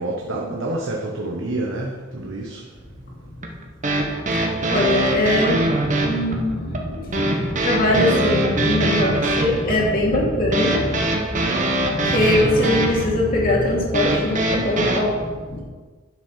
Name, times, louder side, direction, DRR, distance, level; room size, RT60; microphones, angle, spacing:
voice 1, 0.0-2.6 7.1-7.7 8.7-9.4 10.6-12.1, right 2 dB, 80° right, -1 dB, 1.1 m, -31 dB
sound 1, 3.4-15.0, right 1 dB, 40° right, 1.2 m, -23 dB
voice 2, 4.4-11.1 11.5-15.6, left 1 dB, 50° left, -3 dB, 2.3 m, -22 dB
11.0 x 5.6 x 5.8 m, 1.4 s
head